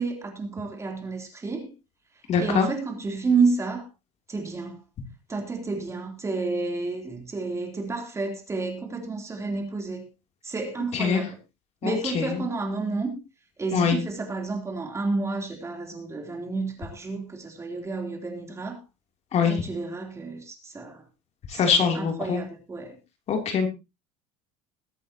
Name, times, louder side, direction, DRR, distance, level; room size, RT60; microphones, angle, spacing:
voice 1, 0.0-1.7 2.4-3.9 4.3-4.8 5.3-10.1 10.4-11.4 11.8-13.2 13.6-18.8 19.4-21.0 21.5-23.0, right 4 dB, 15° right, 3.2 m, -30 dB
voice 2, 2.3-2.7 10.9-11.2 11.8-12.3 13.7-14.0 19.3-19.5 21.5-22.4 23.3-23.7, left 6 dB, 35° left, 3.0 m, -23 dB
21.5 x 8.4 x 2.9 m
supercardioid pair, 135°, 18 cm